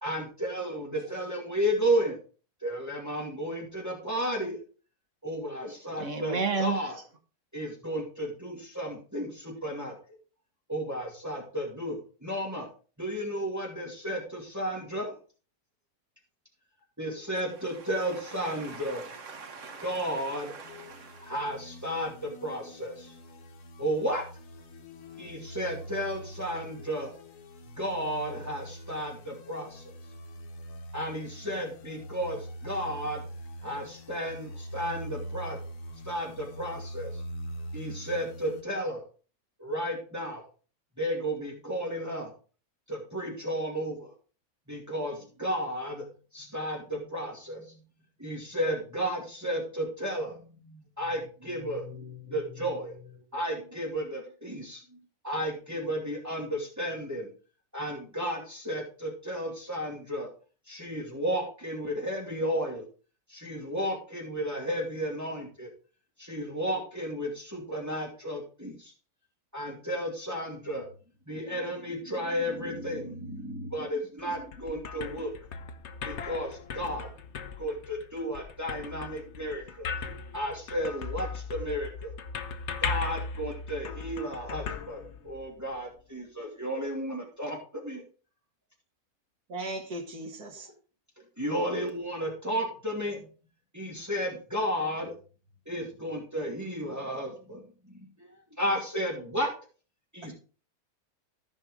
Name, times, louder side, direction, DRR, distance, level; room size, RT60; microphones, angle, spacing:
voice 1, 0.0-2.2 2.6-4.6 5.2-7.0 7.5-10.0 10.7-12.7 13.0-15.2 17.0-19.0 19.8-20.6 21.2-23.1 23.8-24.2 25.2-27.1 27.8-29.8 30.9-33.2 33.6-35.6 36.0-37.2 37.7-39.0 39.6-40.5 41.0-42.3 42.9-44.1 44.7-46.0 46.3-47.8 48.2-54.8 55.2-57.3 57.7-60.3 60.7-62.8 63.3-65.7 66.2-68.9 69.5-70.9 71.3-75.3 76.0-77.1 77.6-82.1 82.8-87.6 87.8-88.0 91.4-93.3 93.7-95.1 95.7-98.3 98.6-99.5 100.1-100.3, equal, 10° right, 2.3 m, -33 dB
voice 2, 6.0-6.9 18.6-21.3, right 5 dB, 55° right, 1.6 m, -35 dB
sound 1, 20.6-38.6, equal, 85° left, 1.6 m, -43 dB
sound 2, 74.2-85.7, left 5 dB, 55° left, 1.0 m, -38 dB
voice 3, 89.5-90.7 100.2-100.3, right 1 dB, 80° right, 2.2 m, -38 dB
14.5 x 5.5 x 3.6 m
omnidirectional pair, 1.5 m